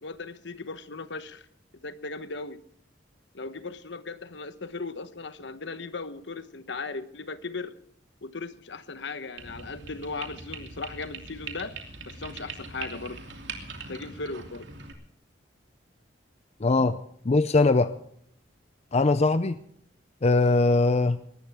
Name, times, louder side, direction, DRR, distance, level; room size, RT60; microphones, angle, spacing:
voice 1, 0.0-1.5 1.8-2.6 3.3-7.7 8.2-11.7 12.1-13.2 13.9-14.7 16.8-16.9, left 3 dB, 65° left, 12 dB, 1.1 m, -37 dB
sound 1, 9.4-14.9, right 4 dB, 70° right, 2.9 m, -41 dB
voice 2, 16.6-17.0 17.3-17.9 18.9-19.6 20.2-21.2, left 3 dB, 35° left, 12 dB, 0.6 m, -21 dB
20.0 x 15.0 x 3.6 m, 0.69 s
head